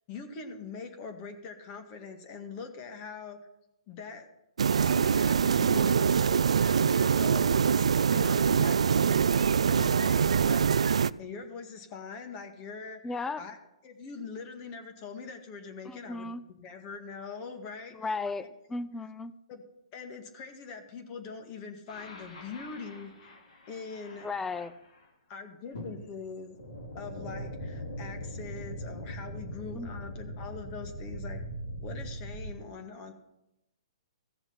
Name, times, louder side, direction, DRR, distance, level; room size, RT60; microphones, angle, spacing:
voice 1, 0.1-3.4 3.9-4.3 4.8-10.7 11.2-13.6 13.8-16.3 16.6-18.5 19.5-19.6 19.9-23.4 23.7-24.3 25.3-26.6 26.9-31.4 31.8-33.1, left 5 dB, 35° left, 5 dB, 1.8 m, -43 dB
sound 1, 4.6-11.1, right 7 dB, 80° right, 0.3 m, -24 dB
voice 2, 5.5-6.1 13.0-13.4 15.8-16.4 17.9-18.4 18.7-19.3 24.2-24.7 29.7-29.9, left 3 dB, 10° left, 14 dB, 0.6 m, -36 dB
sound 2, 21.9-25.0 25.7-32.5, equal, 80° left, 2.9 m, -41 dB
15.0 x 7.0 x 5.8 m, 0.87 s
hypercardioid pair, 135°, 3 cm